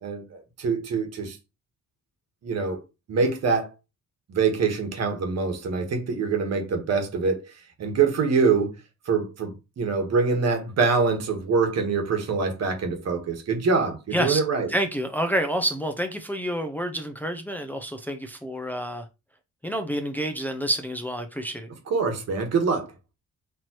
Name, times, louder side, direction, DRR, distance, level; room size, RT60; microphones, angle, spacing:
voice 1, 0.0-1.4 2.4-2.8 3.1-3.7 4.3-7.5 7.8-8.7 9.0-14.7 21.9-22.9, right 4 dB, 60° right, 1.4 m, -24 dB
voice 2, 14.7-19.1 19.6-21.7, right 1 dB, 5° left, 0.5 m, -28 dB
4.5 x 2.9 x 2.9 m
cardioid pair, 90°, 30 cm